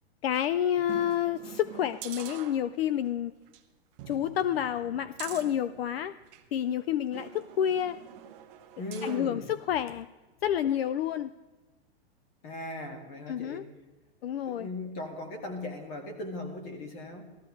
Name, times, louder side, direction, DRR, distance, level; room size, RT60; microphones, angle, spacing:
voice 1, 0.2-3.3 4.1-6.1 6.5-8.0 9.0-10.1 10.4-11.3 13.3-13.6 14.2-14.7, left 10 dB, 65° left, 16 dB, 0.5 m, -29 dB
sound 1, 0.8-3.1 3.5-3.6 4.0-6.5 7.1-9.3 9.8-9.9, right 10 dB, 20° right, 0.6 m, -46 dB
voice 2, 8.8-9.5 12.4-13.7 14.4-17.2, left 2 dB, 30° left, 5 dB, 1.7 m, -38 dB
17.0 x 14.0 x 3.2 m, 1.2 s
supercardioid pair, 170°, 32 cm